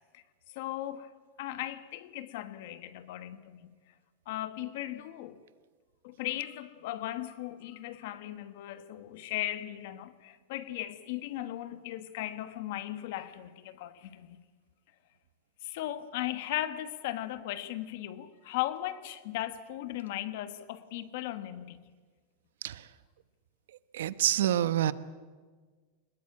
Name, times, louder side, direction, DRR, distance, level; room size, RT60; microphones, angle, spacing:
voice 1, 0.5-1.1 1.4-3.7 4.3-5.4 6.0-14.4 15.6-21.8, left 14 dB, 50° left, 1.3 m, -37 dB
voice 2, 23.9-24.9, right 11 dB, 90° right, 1.0 m, -26 dB
23.0 x 20.5 x 8.7 m
supercardioid pair, 175°, 0 cm